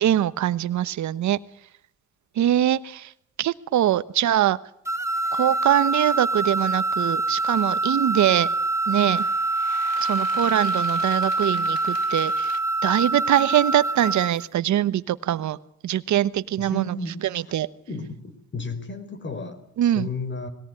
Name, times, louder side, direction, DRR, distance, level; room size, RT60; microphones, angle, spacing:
voice 1, 0.0-1.4 2.4-3.1 3.4-4.6 5.3-8.5 8.9-9.2 10.0-12.5 12.8-15.6 15.8-16.8 17.3-17.7 19.8-20.1, right 12 dB, 70° right, 15 dB, 1.2 m, -23 dB
sound 1, 4.8-14.4, right 2 dB, 10° right, 1.2 m, -25 dB
sound 2, 7.4-7.7 8.9-12.6, left 7 dB, 55° left, 1.9 m, -43 dB
voice 2, 16.6-17.4 17.9-20.5, left 3 dB, 40° left, 11 dB, 4.7 m, -34 dB
21.0 x 18.0 x 9.8 m, 0.75 s
cardioid pair, 90°, 30 cm